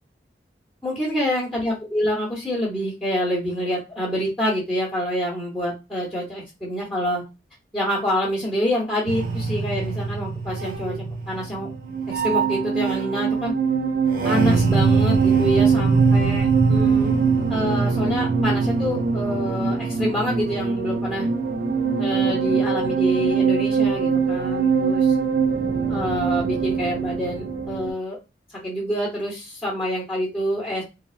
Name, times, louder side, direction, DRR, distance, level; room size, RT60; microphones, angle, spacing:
voice 1, 0.8-7.2 7.7-11.7 12.1-13.5 14.2-17.1 17.5-21.3 22.0-25.1 25.9-28.2 28.6-30.8, equal, ahead, -5 dB, 0.8 m, -26 dB
sound 1, 9.1-27.9, right 5 dB, 50° right, 0.4 m, -22 dB
3.4 x 2.1 x 2.3 m, 0.27 s
head